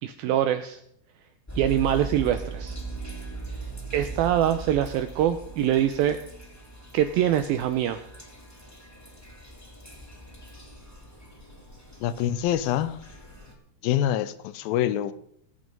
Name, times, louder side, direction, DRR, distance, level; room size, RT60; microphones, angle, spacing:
voice 1, 0.0-0.8 1.6-2.8 3.9-6.2 6.9-8.0, right 11 dB, 80° right, 10 dB, 2.2 m, -24 dB
sound 1, 1.5-13.5, right 3 dB, 5° left, 1.9 m, -40 dB
voice 2, 12.0-13.0 13.8-15.1, left 11 dB, 80° left, 14 dB, 2.2 m, -25 dB
20.0 x 8.4 x 5.3 m, 0.70 s
omnidirectional pair, 4.8 m